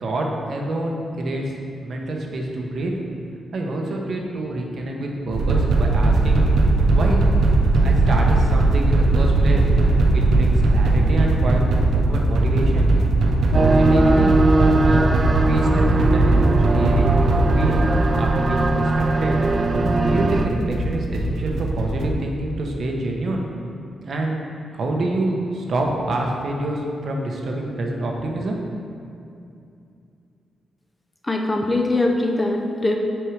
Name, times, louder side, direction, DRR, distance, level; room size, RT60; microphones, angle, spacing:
voice 1, 0.0-1.5 1.8-2.9 3.5-6.4 6.9-7.2 7.8-9.7 10.1-11.6 11.9-12.9 13.5-15.1 15.5-17.1 17.5-17.8 18.1-19.3 19.9-23.4 24.0-28.6, right 1 dB, 55° right, 0 dB, 0.9 m, -26 dB
sound 1, 5.3-22.1, right 2 dB, 80° right, 0.6 m, -19 dB
sound 2, 13.5-20.5, right 2 dB, 35° right, 0.4 m, -20 dB
voice 2, 31.2-33.0, left 2 dB, 20° left, 2 dB, 0.6 m, -21 dB
6.1 x 4.7 x 4.8 m, 2.6 s
cardioid pair, 110°, 0 cm